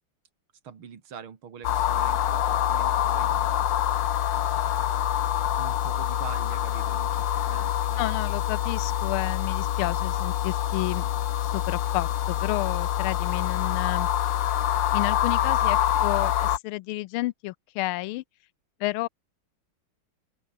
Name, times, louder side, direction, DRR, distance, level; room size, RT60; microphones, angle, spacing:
voice 1, 0.6-3.6 4.5-8.4, right 7 dB, 80° right, 3.1 m, -45 dB
sound 1, 1.6-16.6, left 11 dB, 65° left, 1.6 m, -26 dB
voice 2, 8.0-11.1 11.4-14.1 14.9-18.2 18.8-19.1, left 19 dB, 90° left, 1.4 m, -31 dB
open air
omnidirectional pair, 2.3 m